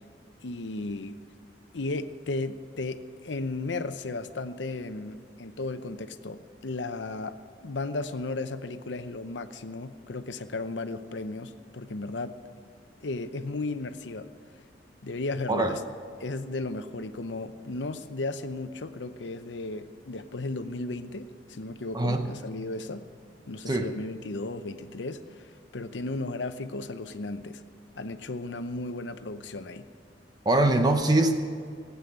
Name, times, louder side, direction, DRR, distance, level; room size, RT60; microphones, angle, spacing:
voice 1, 0.4-1.1 1.7-7.4 7.6-12.4 13.0-14.3 15.0-15.8 16.2-23.0 23.5-27.6 28.0-29.9, left 2 dB, 75° left, 10 dB, 0.8 m, -35 dB
voice 2, 15.5-15.8 21.9-22.3 23.7-23.9 30.4-31.3, right 2 dB, 25° right, 6 dB, 0.7 m, -23 dB
16.5 x 8.4 x 8.6 m, 2.2 s
head